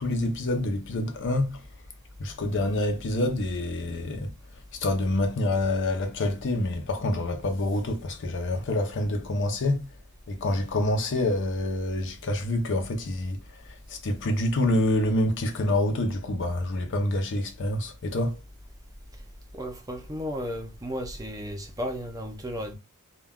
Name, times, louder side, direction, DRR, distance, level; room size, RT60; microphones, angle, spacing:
voice 1, 0.0-1.6 2.2-4.3 4.7-9.9 10.3-13.4 13.9-18.4, left 1 dB, 55° left, 0.5 m, -27 dB
voice 2, 19.5-22.7, equal, 15° right, 0.5 m, -34 dB
2.2 x 2.2 x 3.5 m
head